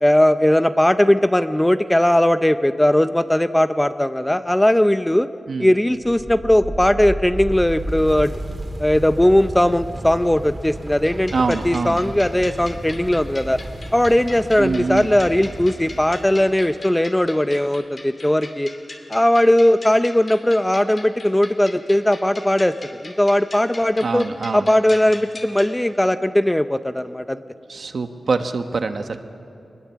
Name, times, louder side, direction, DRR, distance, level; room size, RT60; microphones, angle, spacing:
voice 1, 0.0-5.3 5.6-8.3 8.8-13.6 13.9-18.7 19.1-24.3 24.5-27.4, left 1 dB, 10° left, 11 dB, 0.5 m, -18 dB
sound 1, 6.0-16.8, right 1 dB, 25° right, 2.5 m, -33 dB
sound 2, 11.0-25.7, left 2 dB, 40° left, 2.4 m, -40 dB
voice 2, 11.3-12.0 14.6-15.1 24.0-24.7 27.7-29.2, right 4 dB, 65° right, 7 dB, 1.2 m, -24 dB
24.5 x 20.5 x 7.3 m, 2.8 s
wide cardioid pair, 115°, 0 cm